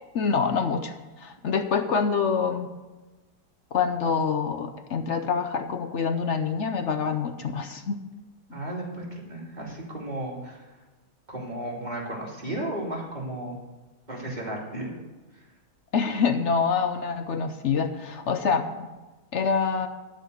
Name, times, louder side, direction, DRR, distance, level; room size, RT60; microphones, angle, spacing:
voice 1, 0.1-2.7 3.7-8.0 15.9-18.9 19.3-19.9, left 5 dB, 60° left, 7 dB, 0.8 m, -26 dB
voice 2, 8.5-10.6 11.3-13.6 14.1-14.9, right 1 dB, 25° right, -3 dB, 2.5 m, -34 dB
12.0 x 5.1 x 8.0 m, 1.2 s
omnidirectional pair, 1.8 m